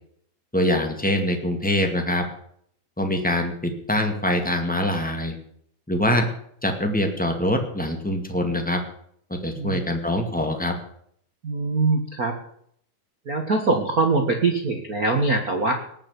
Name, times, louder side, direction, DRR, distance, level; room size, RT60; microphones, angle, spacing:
voice 1, 0.5-2.2 3.0-5.3 5.9-6.3 6.6-8.8 9.4-10.7, left 1 dB, 5° left, 4 dB, 0.8 m, -24 dB
voice 2, 11.4-12.4 13.2-15.7, right 3 dB, 65° right, 4 dB, 0.9 m, -23 dB
19.5 x 7.6 x 8.3 m, 0.65 s
omnidirectional pair, 4.3 m